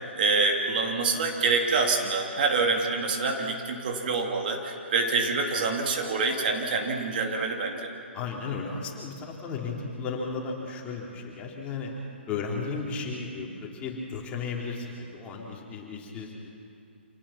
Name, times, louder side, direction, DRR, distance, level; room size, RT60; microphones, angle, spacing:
voice 1, 0.2-7.9, right 4 dB, 50° right, 2 dB, 2.8 m, -26 dB
voice 2, 8.1-11.9 12.3-16.5, left 4 dB, 20° left, -2 dB, 3.6 m, -34 dB
27.0 x 19.0 x 5.9 m, 2.5 s
figure-of-eight pair, 130°, 6 cm